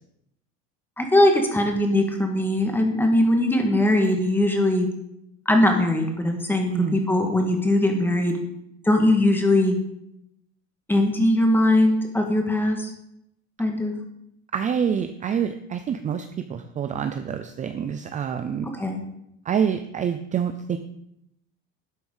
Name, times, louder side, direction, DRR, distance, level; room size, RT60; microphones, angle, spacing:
voice 1, 1.0-4.9 5.5-8.3 8.9-9.8 10.9-12.9 13.6-13.9 18.7-19.0, left 1 dB, 5° left, 3 dB, 2.0 m, -20 dB
voice 2, 14.5-18.7 19.4-20.8, right 8 dB, 25° right, 8 dB, 0.6 m, -27 dB
12.0 x 9.6 x 5.6 m, 0.79 s
cardioid pair, 155°, 31 cm